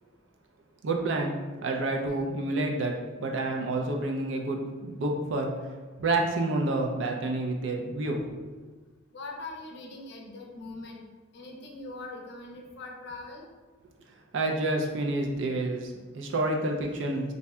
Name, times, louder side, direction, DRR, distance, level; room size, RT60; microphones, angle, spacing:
voice 1, 0.8-8.6 14.3-17.3, right 2 dB, 65° right, 1 dB, 0.4 m, -29 dB
voice 2, 9.1-11.0 11.3-13.5, left 2 dB, 60° left, 1 dB, 0.5 m, -41 dB
2.6 x 2.1 x 3.4 m, 1.3 s
head